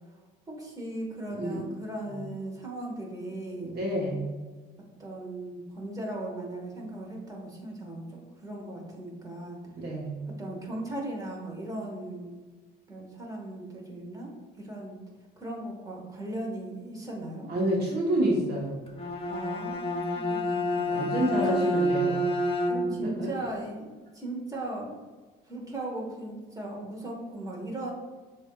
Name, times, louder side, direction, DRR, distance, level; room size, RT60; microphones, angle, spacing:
voice 1, 0.5-3.7 5.0-8.0 8.4-9.6 10.4-12.4 12.9-15.0 15.4-17.5 19.3-20.0 20.3-21.6 22.7-23.9 24.1-25.0 25.5-27.9, right 1 dB, 15° right, -2 dB, 1.2 m, -37 dB
voice 2, 3.6-4.3 9.8-10.2 17.5-18.8 20.9-22.2 23.2-23.3, right 1 dB, 50° right, -2 dB, 1.1 m, -28 dB
Bowed string instrument, 18.9-23.2, equal, 25° left, 0.7 m, -28 dB
7.1 x 2.6 x 2.3 m, 1.3 s
supercardioid pair, 90°, 21 cm